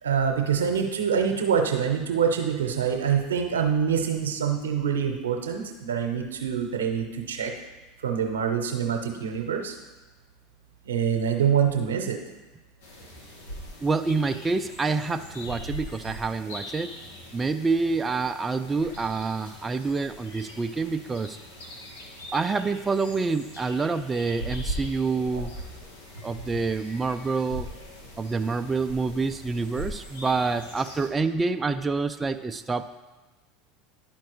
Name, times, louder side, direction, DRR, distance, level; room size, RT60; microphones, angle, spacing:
voice 1, 0.0-7.5 8.0-9.8 10.8-12.2, right 7 dB, 90° right, 4 dB, 0.8 m, -25 dB
sound 1, 12.8-31.1, equal, 80° left, 1.3 m, -40 dB
voice 2, 13.8-16.9 17.3-21.4 22.3-25.5 26.2-27.7 28.2-32.9, right 4 dB, 20° right, 8 dB, 0.3 m, -27 dB
11.5 x 4.4 x 3.1 m, 1.2 s
hypercardioid pair, 85°, 0 cm